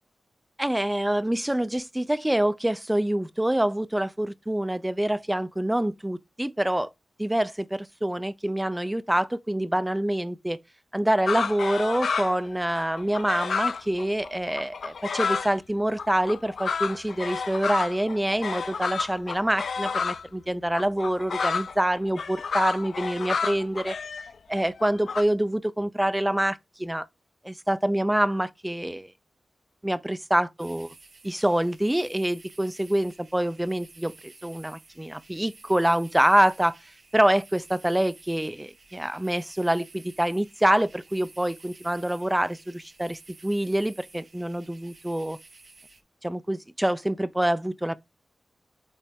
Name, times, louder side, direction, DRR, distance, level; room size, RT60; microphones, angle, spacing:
voice 1, 0.6-6.9 7.2-10.6 10.9-24.0 24.5-27.1 27.4-29.1 29.8-30.9 31.2-36.8 37.1-45.4 46.2-47.9, right 1 dB, 5° right, 0.4 m, -26 dB
sound 1, 11.3-12.5 12.7-15.5 16.0-20.2 20.7-25.2, left 5 dB, 70° left, 0.5 m, -30 dB
sound 2, 30.6-46.0, right 3 dB, 40° right, 1.0 m, -53 dB
8.3 x 3.3 x 3.6 m
wide cardioid pair, 165°, 0 cm